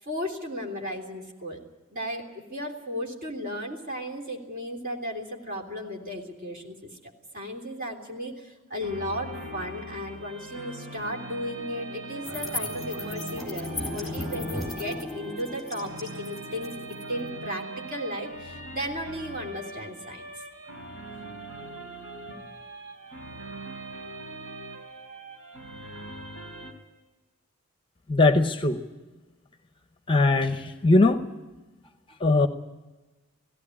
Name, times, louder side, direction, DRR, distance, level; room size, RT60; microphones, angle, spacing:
voice 1, 0.0-1.6 1.9-20.2 22.2-22.4, equal, 40° right, 1 dB, 3.3 m, -35 dB
sound 1, 8.8-26.7, right 2 dB, 80° right, 3.8 m, -41 dB
sound 2, 12.2-18.8, left 2 dB, ahead, 4.3 m, -37 dB
voice 2, 28.1-28.8 30.1-31.2 32.2-32.5, left 2 dB, 25° left, 8 dB, 0.8 m, -20 dB
17.5 x 16.0 x 9.8 m, 1.2 s
head